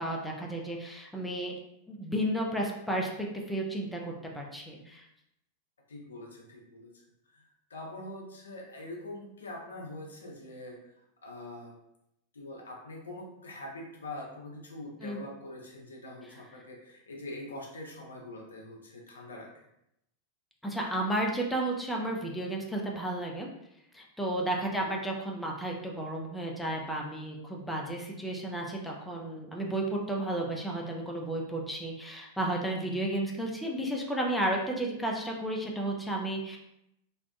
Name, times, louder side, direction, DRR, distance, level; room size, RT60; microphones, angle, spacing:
voice 1, 0.0-1.6 1.9-3.1 3.5-5.0 15.0-15.2 20.6-23.5 23.9-36.6, right 1 dB, 5° left, -1 dB, 0.4 m, -33 dB
voice 2, 5.9-10.9 11.2-11.8 12.3-19.7 24.7-24.9, left 1 dB, 70° left, 0 dB, 0.5 m, -44 dB
2.6 x 2.1 x 2.2 m, 0.81 s
figure-of-eight pair, 90°, 0 cm